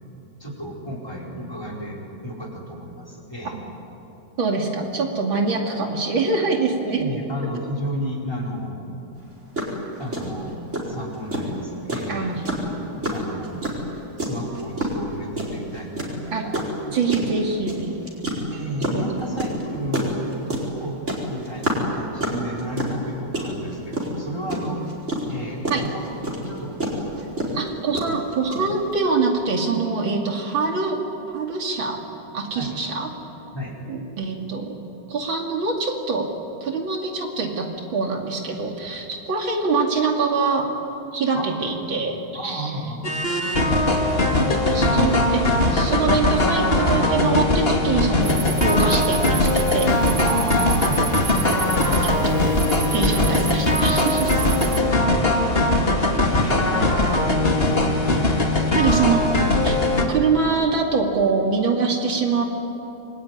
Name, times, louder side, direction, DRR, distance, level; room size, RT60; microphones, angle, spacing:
voice 1, 0.4-3.6 6.8-8.9 10.0-12.4 12.6-13.6 14.2-17.0 18.5-21.0 21.3-24.8 25.3-27.2 32.5-32.8 33.5-33.8 41.3-41.6 42.3-43.1 44.8-45.1 50.2-51.1 54.3-55.3 56.3-56.9 59.1-59.2 60.0-60.1, equal, 10° left, -2 dB, 4.8 m, -32 dB
voice 2, 4.4-7.1 12.1-12.4 16.3-16.4 16.9-18.1 18.9-19.0 25.7-25.8 27.5-31.0 31.3-32.0 32.3-33.1 33.9-34.8 35.1-36.3 36.6-37.7 37.9-40.7 41.1-42.8 44.5-45.4 45.7-50.0 51.3-51.6 52.0-52.4 52.9-54.3 56.7-56.9 58.7-59.2 59.6-59.8 60.1-62.4, right 4 dB, 75° right, 1 dB, 3.3 m, -24 dB
sound 1, 9.2-9.3 9.6-9.7 10.1-28.9, right 1 dB, 35° right, 5.1 m, -27 dB
sound 2, 43.0-60.0, left 2 dB, 30° left, 2.3 m, -20 dB
sound 3, 48.2-54.8, right 7 dB, 50° right, 0.8 m, -32 dB
26.0 x 22.5 x 9.8 m, 2.9 s
omnidirectional pair, 2.2 m